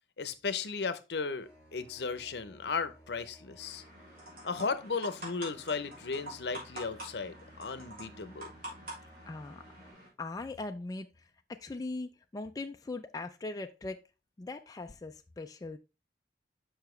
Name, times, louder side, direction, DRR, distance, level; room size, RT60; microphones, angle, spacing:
voice 1, 0.2-3.8 4.4-8.5, left 4 dB, 70° left, 0.7 m, -35 dB
sound 1, 1.4-9.9, equal, 5° right, 3.6 m, -58 dB
sound 2, 3.6-10.1, right 1 dB, 55° right, 3.6 m, -47 dB
voice 2, 9.3-9.6 10.2-14.0 14.4-15.8, left 2 dB, 20° left, 0.3 m, -40 dB
6.9 x 5.6 x 3.1 m
head